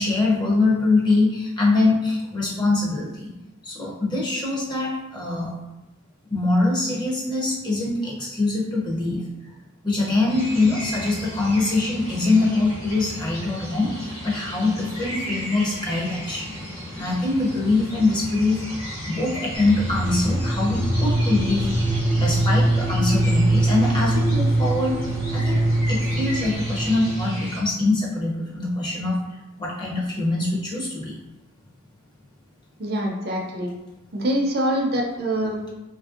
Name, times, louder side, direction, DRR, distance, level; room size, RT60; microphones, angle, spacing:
voice 1, 0.0-3.4 3.6-5.5 6.3-9.3 9.8-16.6 17.0-18.6 19.1-21.7 22.1-25.6 25.9-31.2, left 2 dB, 20° left, -4 dB, 0.5 m, -23 dB
sound 1, 10.3-27.6, equal, 90° left, 1.2 m, -35 dB
sound 2, 19.5-27.4, right 1 dB, 60° left, 0.8 m, -22 dB
voice 2, 32.8-33.7 34.1-35.7, right 1 dB, 45° right, 0 dB, 0.5 m, -24 dB
3.0 x 2.5 x 2.4 m, 1.0 s
head